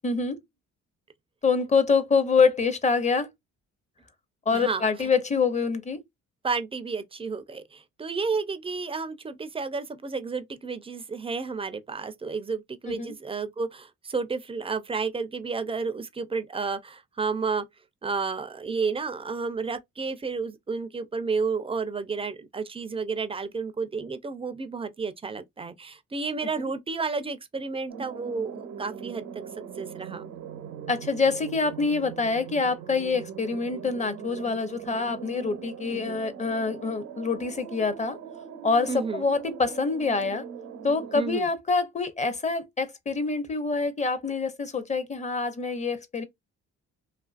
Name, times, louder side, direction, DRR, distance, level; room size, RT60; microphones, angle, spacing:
voice 1, 0.0-0.4 1.4-3.3 4.5-6.0 12.9-13.1 26.6-26.7 30.9-38.2 38.6-40.5 40.8-46.2, left 4 dB, 25° left, 0.6 m, -26 dB
voice 2, 4.5-4.9 6.4-17.6 18.0-29.4 29.8-30.3 35.9-36.2 38.9-39.2 41.1-41.5, right 4 dB, 20° right, 0.4 m, -31 dB
sound 1, 27.9-41.2, right 7 dB, 85° right, 0.7 m, -41 dB
2.7 x 2.5 x 2.3 m
cardioid pair, 90°, 30 cm